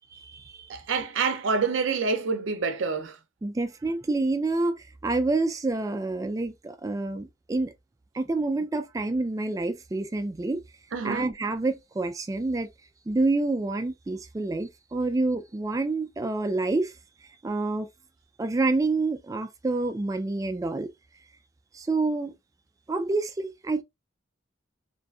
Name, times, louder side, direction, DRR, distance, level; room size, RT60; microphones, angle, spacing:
voice 1, 0.2-0.7 3.4-4.8 5.0-7.7 8.1-10.6 11.0-12.7 13.1-16.9 17.4-17.9 18.4-20.9 21.7-22.3 22.9-23.8, right 2 dB, 15° right, 0.3 m, -27 dB
voice 2, 0.7-3.2 10.9-11.3, right 5 dB, 80° right, 0.5 m, -27 dB
2.6 x 2.5 x 2.2 m
head